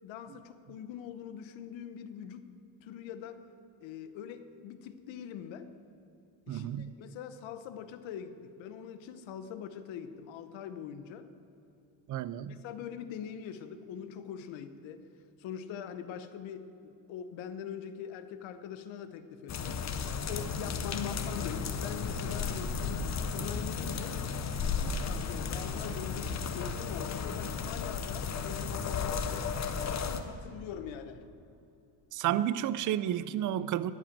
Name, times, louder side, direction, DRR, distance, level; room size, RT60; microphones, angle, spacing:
voice 1, 0.0-2.5 2.8-3.4 3.8-5.7 6.5-11.3 12.5-15.0 15.4-19.9 20.3-23.1 23.3-24.2 24.7-29.5 29.8-31.3, left 8 dB, 75° left, 10 dB, 1.0 m, -43 dB
voice 2, 6.5-7.0 12.1-12.6 32.1-33.9, right 11 dB, 45° right, 16 dB, 0.4 m, -31 dB
sound 1, 19.5-30.2, left 5 dB, 35° left, 0.8 m, -34 dB
13.5 x 5.9 x 8.5 m, 2.8 s
cardioid pair, 125°, 46 cm